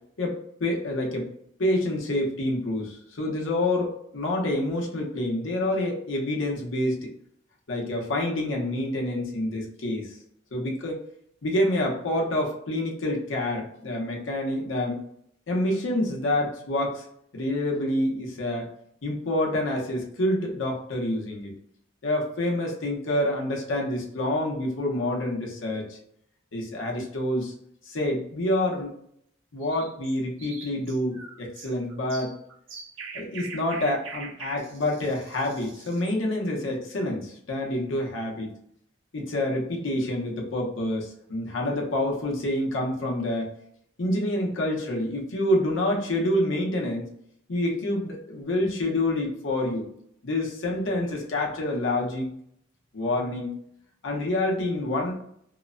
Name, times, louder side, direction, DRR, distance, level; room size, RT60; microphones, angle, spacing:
voice 1, 0.2-1.3 1.6-7.1 7.7-10.2 10.5-11.0 11.4-15.0 15.5-17.0 17.3-18.7 19.0-21.5 22.0-26.0 26.5-27.5 27.9-28.9 29.5-32.3 33.1-38.5 39.1-43.5 44.0-47.1 47.5-49.9 50.2-52.3 52.9-53.5 54.0-55.1, left 1 dB, 85° left, -1 dB, 0.8 m, -27 dB
sound 1, 29.6-36.2, right 5 dB, 80° right, 0.5 m, -43 dB
2.9 x 2.1 x 2.5 m, 0.71 s
head